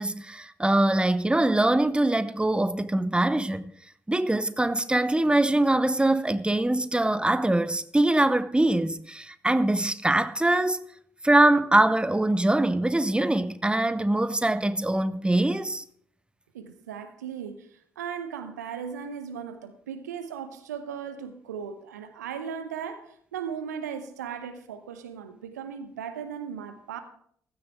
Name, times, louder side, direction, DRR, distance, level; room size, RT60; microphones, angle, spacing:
voice 1, 0.0-3.6 4.1-10.8 11.2-15.8, right 1 dB, 10° right, 0.9 m, -23 dB
voice 2, 16.5-17.7 18.0-27.0, right 7 dB, 85° right, 0.9 m, -37 dB
15.5 x 13.0 x 3.6 m
figure-of-eight pair, 40°, 9 cm